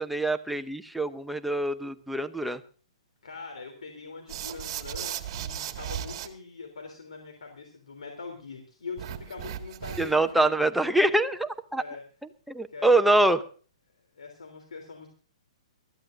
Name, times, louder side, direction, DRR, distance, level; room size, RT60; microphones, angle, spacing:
voice 1, 0.0-2.6 10.0-11.8 12.5-13.4, right 2 dB, ahead, 8 dB, 0.8 m, -24 dB
voice 2, 3.2-10.7 11.7-12.0 12.7-13.4 14.2-15.1, left 4 dB, 80° left, 2 dB, 3.3 m, -42 dB
sound 1, 4.3-6.3 9.0-10.3, right 10 dB, 45° right, 1.9 m, -36 dB
23.5 x 14.0 x 2.6 m, 0.38 s
hypercardioid pair, 130°, 3 cm